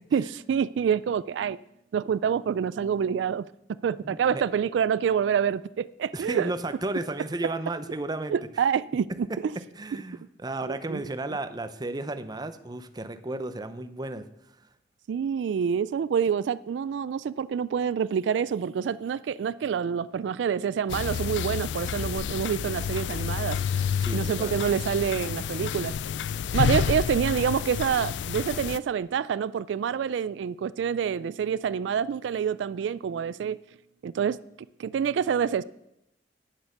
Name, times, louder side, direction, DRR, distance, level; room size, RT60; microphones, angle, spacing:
voice 1, 0.1-1.6 1.9-3.4 3.8-6.5 8.3-9.1 9.4-9.5 10.7-11.0 15.1-23.6 23.9-25.9 26.5-33.6 34.0-34.4 34.8-35.6, right 7 dB, 80° right, 17 dB, 0.3 m, -27 dB
voice 2, 4.0-4.4 6.1-8.3 9.1-9.4 9.8-14.3 23.9-24.6 26.8-27.0, right 2 dB, 25° right, 10 dB, 0.6 m, -33 dB
sound 1, 20.9-28.8, left 7 dB, 80° left, 0.3 m, -29 dB
9.4 x 8.0 x 6.5 m, 0.82 s
head